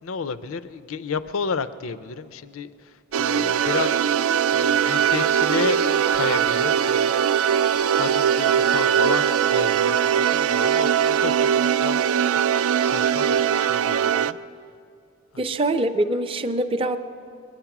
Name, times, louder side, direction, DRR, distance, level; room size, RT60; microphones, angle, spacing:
voice 1, 0.0-4.2 4.5-7.1 7.9-12.4 12.8-14.4 15.3-15.5, left 5 dB, 70° left, 13 dB, 0.5 m, -32 dB
sound 1, 3.1-14.3, right 8 dB, 80° right, 0.4 m, -21 dB
voice 2, 15.4-17.0, right 1 dB, 25° right, 6 dB, 0.5 m, -24 dB
21.5 x 10.5 x 5.9 m, 2.3 s
head